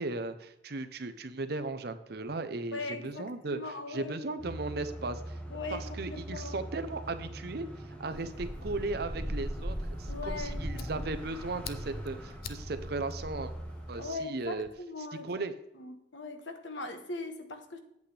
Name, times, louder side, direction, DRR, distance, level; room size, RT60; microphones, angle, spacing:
voice 1, 0.0-5.4 5.7-7.7 8.0-13.5 13.9-14.7 15.2-15.5, right 3 dB, 55° right, 11 dB, 0.6 m, -36 dB
voice 2, 2.7-4.2 5.5-5.8 6.1-6.6 10.1-11.0 14.0-15.3 15.8-17.8, left 3 dB, 80° left, 7 dB, 1.1 m, -40 dB
sound 1, 4.4-14.2, right 1 dB, 5° left, 1.0 m, -43 dB
Wind, 8.1-14.0, equal, 20° right, 1.7 m, -39 dB
Fire, 10.1-14.7, left 7 dB, 50° left, 0.5 m, -50 dB
8.3 x 8.3 x 3.3 m, 0.85 s
head